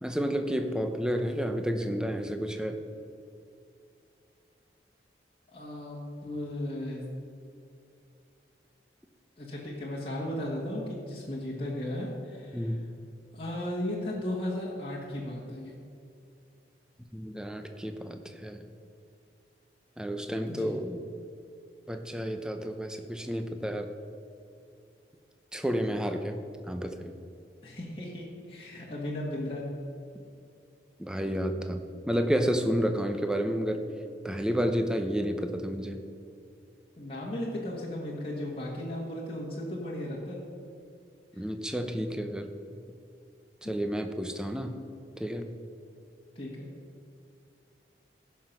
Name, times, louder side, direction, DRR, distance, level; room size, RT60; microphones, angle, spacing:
voice 1, 0.0-2.8 12.5-12.8 17.1-18.6 20.0-21.0 21.9-23.9 25.5-26.4 26.7-27.1 31.0-31.8 32.1-33.8 34.2-36.0 41.4-42.5 43.6-44.7 45.2-45.5, equal, 5° right, 6 dB, 0.6 m, -30 dB
voice 2, 5.5-7.0 9.4-12.8 13.3-15.7 20.5-20.7 27.6-29.6 37.0-40.4 41.4-41.5 43.6-43.7 46.3-46.7, left 1 dB, 30° left, -5 dB, 1.6 m, -35 dB
15.5 x 5.8 x 5.9 m, 2.5 s
head